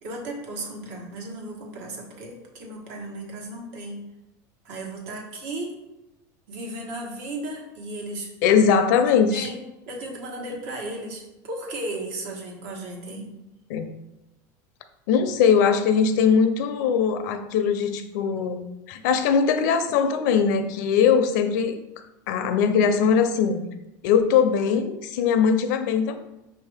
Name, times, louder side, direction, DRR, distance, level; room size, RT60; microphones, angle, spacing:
voice 1, 0.0-4.1 4.6-5.8 6.5-8.3 9.3-13.3, right 1 dB, 70° right, 0 dB, 1.2 m, -35 dB
voice 2, 8.4-9.5 13.7-13.9 15.1-18.6 18.9-21.8 22.3-23.6 24.0-26.2, left 6 dB, 80° left, 9 dB, 0.5 m, -21 dB
5.2 x 2.7 x 3.4 m, 0.96 s
supercardioid pair, 135°, 10 cm